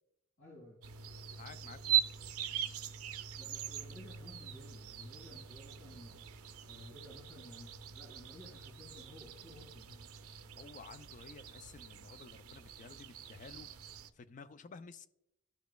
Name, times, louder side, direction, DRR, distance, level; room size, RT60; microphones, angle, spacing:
voice 1, 0.4-0.8 3.4-6.3 6.7-10.1, left 1 dB, 70° left, -5 dB, 2.6 m, -55 dB
sound 1, 0.8-14.1, right 10 dB, 85° right, 0.5 m, -41 dB
voice 2, 1.3-2.0 10.6-13.7 14.1-15.1, left 4 dB, 35° left, 12 dB, 0.3 m, -52 dB
12.5 x 5.0 x 2.3 m, 0.82 s
head